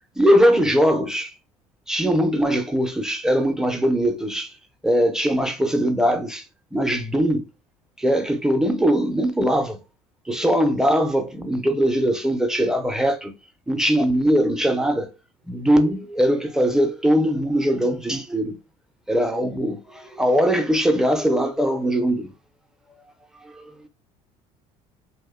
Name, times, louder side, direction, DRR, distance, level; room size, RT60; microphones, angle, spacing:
voice 1, 0.2-1.3 1.9-4.5 4.8-6.4 6.7-7.5 8.0-9.8 10.3-13.3 13.7-15.1 15.5-18.6 19.1-22.3 23.4-23.8, equal, 5° right, 0.5 m, -21 dB
2.7 x 2.1 x 2.3 m
supercardioid pair, 75°, 16 cm